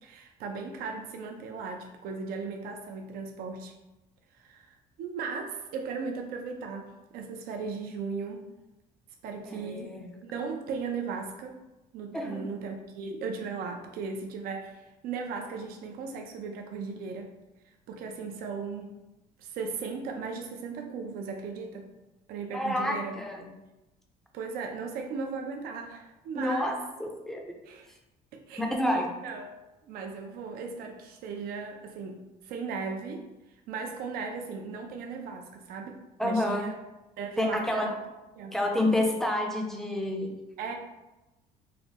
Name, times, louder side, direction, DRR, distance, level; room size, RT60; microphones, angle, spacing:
voice 1, 0.0-3.7 4.3-8.5 9.2-10.0 10.2-11.6 11.9-17.4 17.9-19.0 19.4-21.9 22.3-23.2 24.3-26.7 27.6-27.9 28.3-29.5 29.8-33.3 33.7-36.8 37.2-37.9 38.3-38.6 40.6-40.7, right 5 dB, 70° right, 3 dB, 0.4 m, -37 dB
voice 2, 9.5-10.1 12.1-12.4 22.5-23.5 26.3-26.7 27.0-27.4 28.6-29.1 36.2-36.7 37.4-37.9 38.5-40.3, left 1 dB, ahead, 1 dB, 0.4 m, -28 dB
3.1 x 2.2 x 2.7 m, 1.0 s
cardioid pair, 110°, 16 cm